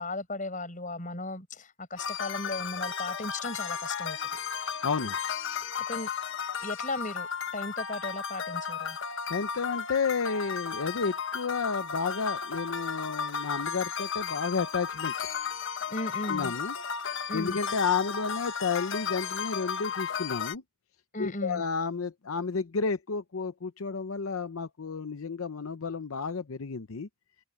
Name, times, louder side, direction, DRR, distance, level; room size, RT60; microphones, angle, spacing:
voice 1, 0.0-4.2 5.9-6.1 6.6-7.3 7.5-9.0 15.9-16.5 17.3-17.6 21.1-21.6, left 2 dB, 35° left, 6.3 m, -36 dB
sound 1, 2.0-20.6, left 6 dB, 60° left, 1.2 m, -34 dB
voice 2, 4.8-5.2 5.5-5.7 9.3-15.1 16.3-16.8 17.3-20.6 21.2-27.1, left 5 dB, 80° left, 0.7 m, -31 dB
open air
head